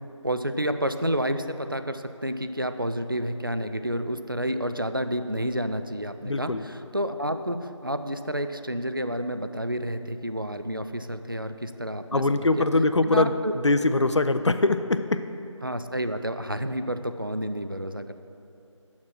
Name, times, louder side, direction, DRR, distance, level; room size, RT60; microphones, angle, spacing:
voice 1, 0.2-12.2 12.6-12.7 13.0-13.5 15.6-18.1, equal, 45° right, 9 dB, 0.4 m, -30 dB
voice 2, 6.3-6.6 12.1-13.3 13.6-15.3, left 2 dB, 65° left, 11 dB, 0.5 m, -22 dB
7.2 x 6.3 x 6.0 m, 2.7 s
figure-of-eight pair, 180°, 16 cm